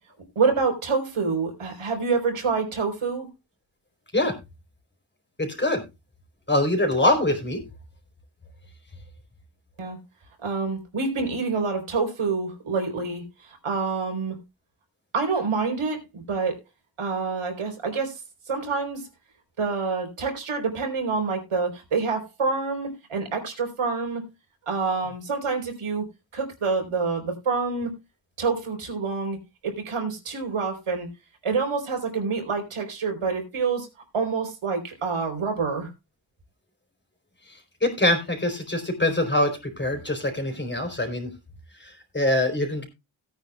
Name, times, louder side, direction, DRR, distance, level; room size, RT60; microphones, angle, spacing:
voice 1, 0.4-3.3 9.8-10.0 10.4-14.4 15.1-16.6 17.0-18.2 18.5-19.1 19.6-24.3 24.7-26.1 26.3-28.0 28.4-29.4 29.6-31.1 31.4-33.9 34.1-35.9, right 4 dB, 90° right, 3 dB, 4.1 m, -27 dB
voice 2, 5.4-5.8 6.5-7.6 37.8-41.3 41.8-42.8, left 1 dB, 20° left, 4 dB, 4.1 m, -24 dB
17.5 x 9.4 x 2.3 m, 0.24 s
wide cardioid pair, 80°, 49 cm